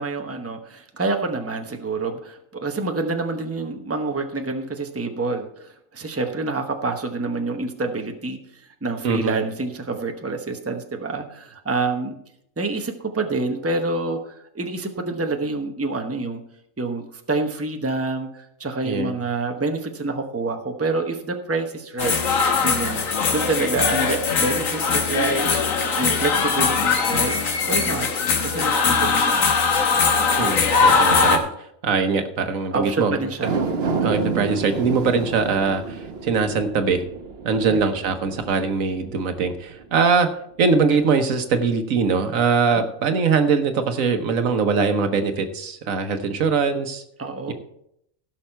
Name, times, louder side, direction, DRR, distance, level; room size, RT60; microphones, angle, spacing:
voice 1, 0.0-8.4 8.8-12.2 12.6-16.4 16.8-22.2 22.6-23.0 23.3-25.4 26.0-27.3 27.7-28.1 28.4-29.6 29.9-30.0 32.7-33.6 37.5-37.8 42.8-42.9 47.2-47.5, right 3 dB, 10° right, 4 dB, 0.9 m, -27 dB
voice 2, 9.0-9.3 18.8-19.1 30.4-31.5 31.8-33.2 34.0-37.0 37.4-40.3 40.6-47.0 47.5-47.6, right 5 dB, 85° right, 8 dB, 1.4 m, -22 dB
sound 1, 22.0-31.4, left 5 dB, 85° left, 1.6 m, -20 dB
sound 2, 33.3-39.8 40.2-40.3, right 4 dB, 55° right, 1.1 m, -29 dB
16.0 x 6.2 x 4.5 m, 0.74 s
omnidirectional pair, 1.4 m